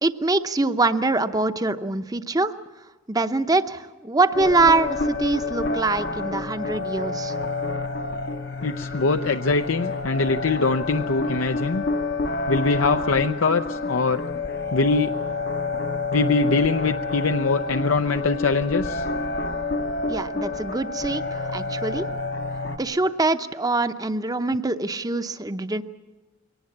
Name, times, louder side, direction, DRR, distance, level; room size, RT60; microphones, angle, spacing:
voice 1, 0.0-2.6 3.1-7.3 20.1-22.1 22.8-25.8, right 3 dB, 20° right, 10 dB, 0.7 m, -24 dB
sound 1, 4.3-22.8, left 3 dB, 50° left, 0.9 m, -29 dB
voice 2, 8.6-11.8 12.5-14.2 14.7-15.1 16.1-19.0, left 4 dB, 75° left, 7 dB, 0.6 m, -22 dB
23.0 x 18.5 x 8.6 m, 1.2 s
head